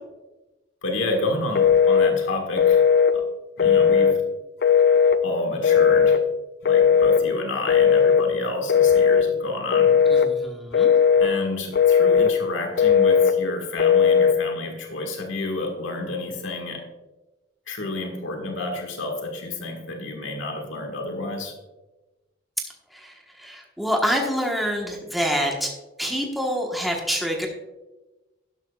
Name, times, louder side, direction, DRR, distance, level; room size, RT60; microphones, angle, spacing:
voice 1, 0.8-2.8 3.1-3.3 3.6-4.2 5.2-6.2 6.6-10.2 11.2-16.8 17.7-21.5, left 2 dB, 80° left, 2 dB, 1.7 m, -30 dB
Telephone, 1.6-2.1 2.6-3.1 3.6-4.2 4.6-5.2 5.6-6.2 6.7-7.2 7.7-8.2 8.7-9.3 9.7-10.3 10.7-11.3 11.7-12.3 12.8-13.3 13.8-14.4, left 7 dB, 55° left, 0.5 m, -17 dB
voice 2, 10.1-10.9 22.9-23.1 23.4-25.7 26.0-27.5, equal, ahead, 0 dB, 1.2 m, -26 dB
12.0 x 11.5 x 2.4 m, 1.1 s
head